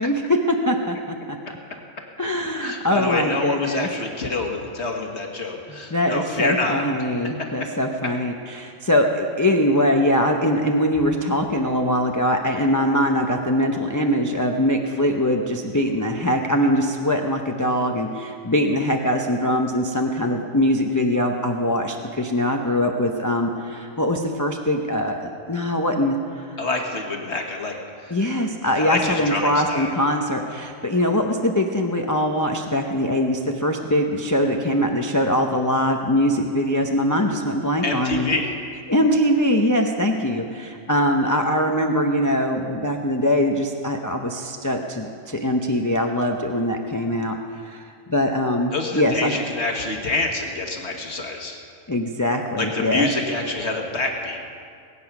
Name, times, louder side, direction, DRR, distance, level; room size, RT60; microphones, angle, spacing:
voice 1, 0.0-1.4 2.2-3.9 5.9-25.2 25.5-26.5 28.1-38.3 38.9-47.4 47.6-49.3 51.9-53.1, left 1 dB, 20° left, 2 dB, 0.6 m, -22 dB
voice 2, 2.6-6.8 7.4-7.5 26.6-27.8 28.0-28.2 28.6-29.9 37.8-38.5 48.7-51.6 52.6-54.4, left 2 dB, 55° left, 1 dB, 1.8 m, -27 dB
21.0 x 8.6 x 6.0 m, 2.3 s
omnidirectional pair, 1.4 m